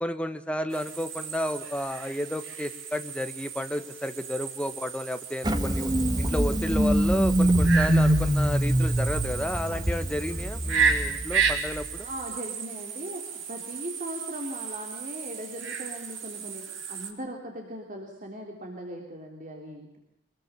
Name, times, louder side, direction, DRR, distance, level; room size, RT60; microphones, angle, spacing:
voice 1, 0.0-5.9 6.2-12.1, left 1 dB, 5° left, 8 dB, 1.3 m, -32 dB
sound 1, 0.7-17.1, right 6 dB, 80° right, 4.3 m, -33 dB
Engine starting, 5.4-11.9, right 1 dB, 20° right, 1.7 m, -24 dB
voice 2, 11.9-20.0, equal, 40° right, 1 dB, 3.4 m, -39 dB
25.5 x 21.0 x 7.1 m, 0.80 s
head